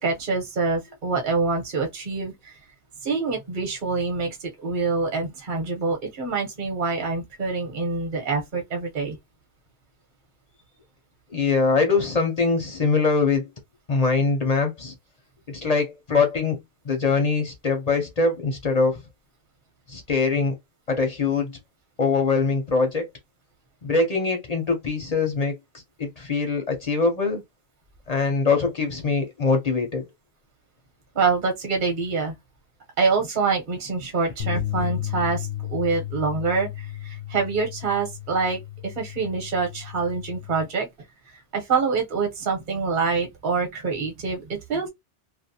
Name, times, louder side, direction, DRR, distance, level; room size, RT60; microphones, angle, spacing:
voice 1, 0.0-2.5 3.0-9.2 31.1-32.3 33.0-40.9 41.3-44.9, right 4 dB, 45° right, 1.0 m, -26 dB
voice 2, 11.3-13.4 13.9-14.9 15.5-16.6 16.8-19.0 19.9-20.6 20.9-21.6 22.0-23.1 23.8-25.5 26.0-27.4 28.1-30.1, left 4 dB, 45° left, 0.5 m, -23 dB
sound 1, 34.4-40.6, left 13 dB, 85° left, 1.0 m, -33 dB
2.4 x 2.2 x 2.7 m
omnidirectional pair, 1.2 m